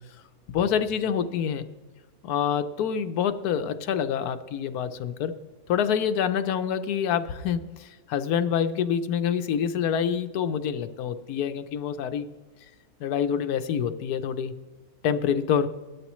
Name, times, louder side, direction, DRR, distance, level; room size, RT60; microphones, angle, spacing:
voice 1, 0.5-1.7 2.2-5.3 5.7-12.3 13.0-14.5 15.0-15.7, left 8 dB, 90° left, 10 dB, 1.3 m, -26 dB
17.0 x 12.0 x 3.1 m, 1.3 s
omnidirectional pair, 1.6 m